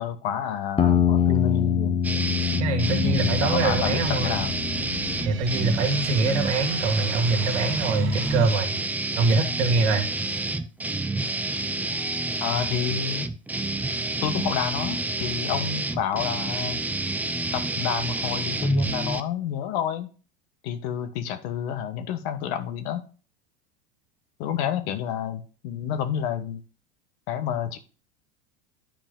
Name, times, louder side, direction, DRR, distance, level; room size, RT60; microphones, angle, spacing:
voice 1, 0.0-2.0 3.0-4.6 12.4-13.3 14.2-16.8 17.5-20.1 20.6-23.0 24.4-26.6 27.3-27.8, left 9 dB, 70° left, 9 dB, 1.3 m, -29 dB
sound 1, 0.8-5.4, left 8 dB, 15° left, 0.9 m, -25 dB
sound 2, 2.0-19.2, right 2 dB, 5° right, 0.4 m, -28 dB
voice 2, 2.6-4.5 5.2-8.7 9.2-10.1, right 3 dB, 85° right, 5 dB, 1.9 m, -24 dB
sound 3, 3.3-8.5, right 7 dB, 35° right, 1.1 m, -39 dB
10.5 x 4.8 x 3.8 m, 0.36 s
supercardioid pair, 115°, 33 cm